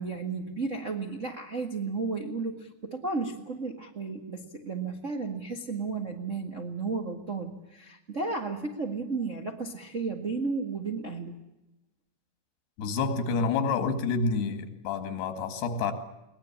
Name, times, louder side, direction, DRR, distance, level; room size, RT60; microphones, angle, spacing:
voice 1, 0.0-11.3, right 4 dB, 50° right, 2 dB, 0.9 m, -33 dB
voice 2, 12.8-15.9, left 4 dB, 85° left, 9 dB, 4.2 m, -28 dB
22.5 x 19.5 x 8.7 m, 0.96 s
omnidirectional pair, 4.5 m